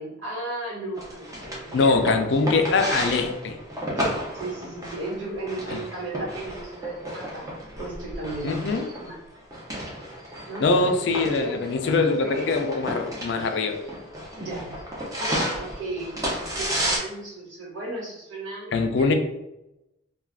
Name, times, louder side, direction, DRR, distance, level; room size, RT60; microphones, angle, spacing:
voice 1, 0.0-2.4 4.0-8.5 9.0-9.2 10.5-12.5 14.4-14.8 15.2-19.1, right 2 dB, 75° right, -6 dB, 1.4 m, -35 dB
sound 1, 1.0-17.0, equal, 15° right, 0.5 m, -33 dB
voice 2, 1.7-3.6 5.7-5.8 8.4-8.9 10.6-13.8 18.7-19.1, left 3 dB, 60° left, 6 dB, 0.4 m, -23 dB
2.4 x 2.3 x 3.3 m, 0.90 s
head